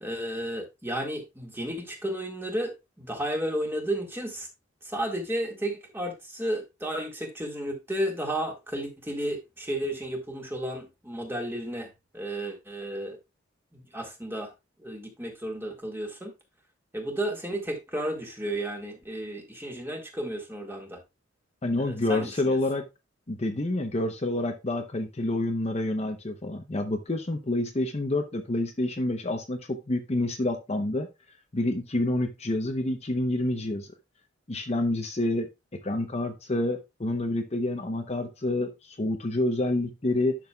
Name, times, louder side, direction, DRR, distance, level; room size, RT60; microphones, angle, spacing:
voice 1, 0.0-4.5 4.8-13.2 13.7-14.5 14.8-16.3 16.9-21.0 21.8-22.6, right 1 dB, 10° right, 2 dB, 1.8 m, -33 dB
voice 2, 21.6-22.8 23.3-31.1 31.5-33.9 34.5-35.5 35.8-40.4, left 2 dB, 35° left, 4 dB, 0.8 m, -28 dB
10.5 x 6.3 x 2.3 m, 0.23 s
head